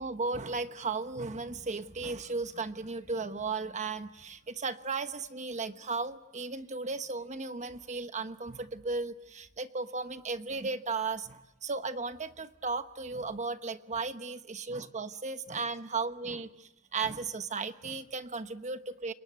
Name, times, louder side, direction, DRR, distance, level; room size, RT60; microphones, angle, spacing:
voice 1, 0.0-19.1, right 4 dB, 35° right, 10 dB, 1.1 m, -35 dB
30.0 x 19.5 x 9.6 m, 0.99 s
head